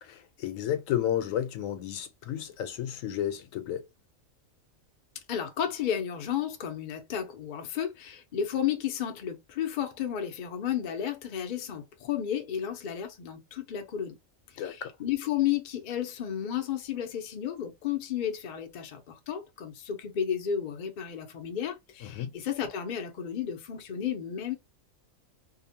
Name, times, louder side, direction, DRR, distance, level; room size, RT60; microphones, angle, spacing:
voice 1, 0.0-3.9 14.6-14.9 22.0-22.3, left 10 dB, 80° left, 1.0 m, -32 dB
voice 2, 5.3-14.2 14.5-24.6, left 9 dB, 60° left, 0.5 m, -32 dB
2.8 x 2.0 x 2.7 m
omnidirectional pair, 1.4 m